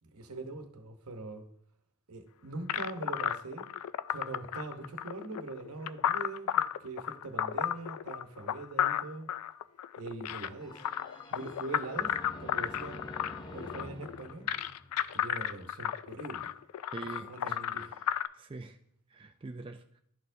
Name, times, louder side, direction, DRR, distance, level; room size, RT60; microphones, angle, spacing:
voice 1, 0.0-1.4 2.1-3.7 4.1-9.3 10.0-10.8 11.3-13.1 13.5-14.5 15.1-16.5 17.3-17.9, right 2 dB, 75° right, 0.9 m, -42 dB
sound 1, 2.7-18.3, left 10 dB, 80° left, 0.3 m, -33 dB
sound 2, 10.6-15.4, left 1 dB, 20° left, 0.6 m, -47 dB
voice 2, 16.9-18.8 19.1-20.0, right 3 dB, 25° right, 0.4 m, -45 dB
12.0 x 4.4 x 2.6 m
head